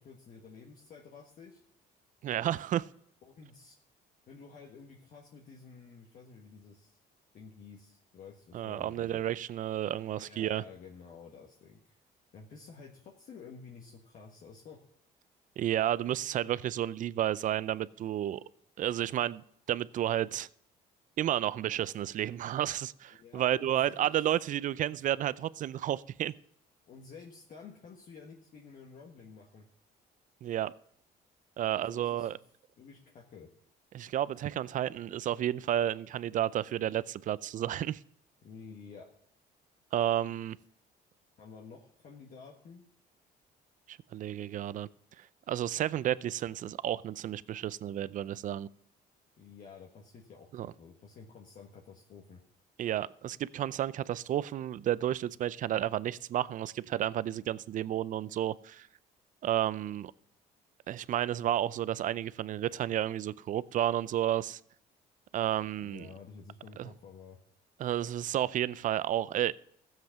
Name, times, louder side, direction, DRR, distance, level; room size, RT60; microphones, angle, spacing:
voice 1, 0.0-1.6 3.2-3.8 4.3-7.0 7.3-9.3 10.1-12.0 12.3-14.8 23.1-24.1 26.9-29.7 31.7-32.3 32.8-33.5 38.4-39.1 41.4-42.8 49.4-52.4 65.8-67.4, left 5 dB, 55° left, 1.6 m, -51 dB
voice 2, 2.2-2.9 8.5-10.6 15.6-18.4 18.8-20.5 21.2-26.3 30.4-30.7 31.6-32.4 33.9-38.0 39.9-40.6 43.9-44.9 45.2-48.7 50.5-50.7 52.8-58.9 59.4-60.1 60.9-64.6 65.3-66.1 66.8-66.9 67.8-69.5, right 11 dB, 50° right, 0.5 m, -31 dB
14.5 x 7.6 x 5.8 m
cardioid pair, 110°, 17 cm